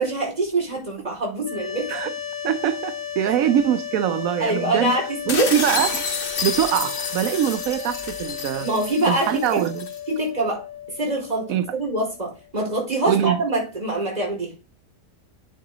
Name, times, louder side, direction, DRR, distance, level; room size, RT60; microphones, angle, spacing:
voice 1, 0.0-1.9 4.4-5.5 8.6-9.6 10.1-10.6 11.0-14.5, right 2 dB, 25° right, 5.1 m, -24 dB
sound 1, 1.4-12.5, left 9 dB, 70° left, 1.8 m, -34 dB
voice 2, 2.4-5.0 5.3-6.0 6.4-8.7 9.1-9.8 11.5-11.7 13.1-13.4, right 11 dB, 70° right, 1.0 m, -23 dB
sound 2, 5.3-10.0, left 5 dB, 40° left, 1.2 m, -29 dB
9.0 x 7.2 x 3.8 m
omnidirectional pair, 1.6 m